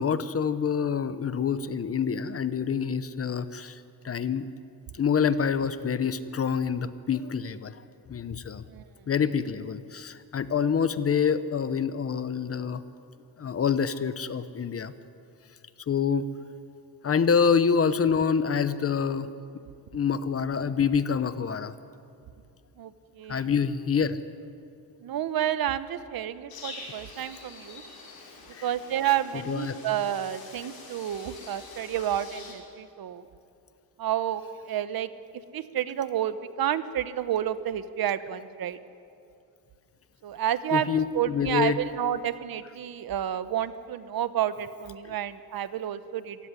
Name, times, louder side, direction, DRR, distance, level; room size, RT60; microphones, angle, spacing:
voice 1, 0.0-4.5 4.9-7.8 8.1-8.6 9.1-12.8 13.4-14.9 15.9-16.3 17.0-19.3 19.9-21.7 23.3-24.2 28.5-28.7 29.3-29.8 40.7-41.8, left 6 dB, 35° left, 13 dB, 0.9 m, -26 dB
voice 2, 22.8-23.5 25.0-27.8 28.6-33.2 34.0-35.1 35.5-38.8 40.2-40.9 41.1-46.4, right 11 dB, 65° right, 13 dB, 1.1 m, -30 dB
sound 1, 26.5-32.5, left 3 dB, 65° left, 6.2 m, -45 dB
26.5 x 16.0 x 9.9 m, 2.6 s
cardioid pair, 155°, 39 cm